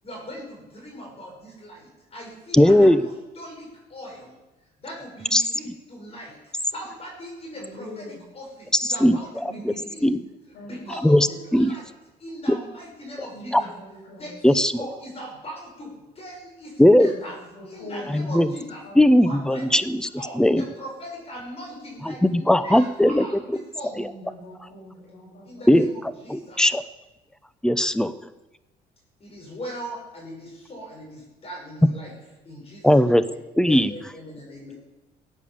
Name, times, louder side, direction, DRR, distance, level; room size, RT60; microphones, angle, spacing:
voice 1, 0.0-4.3 4.8-10.1 10.6-11.9 12.2-13.7 14.1-17.4 17.7-18.8 19.2-19.8 20.1-24.0 25.4-26.6 29.2-32.1 32.4-33.1 33.6-34.7, equal, 35° left, -2 dB, 5.6 m, -40 dB
voice 2, 2.5-3.0 5.3-5.7 8.8-9.2 9.6-9.7 10.0-10.2 11.0-11.3 11.5-11.8 12.5-12.6 13.5-13.6 14.4-14.7 16.8-17.1 18.1-18.5 19.0-20.1 20.3-20.6 22.0-23.6 24.0-24.1 25.7-25.9 26.3-26.8 27.6-28.2 32.8-33.2 33.6-33.9, left 1 dB, 5° left, 14 dB, 0.8 m, -18 dB
voice 3, 7.5-8.1 9.4-10.1 10.5-11.2 13.3-14.4 17.0-17.1 17.5-18.4 18.8-19.2 23.9-25.7, left 1 dB, 85° left, -3 dB, 6.1 m, -42 dB
18.0 x 8.5 x 7.3 m, 1.1 s
cardioid pair, 110°, 17 cm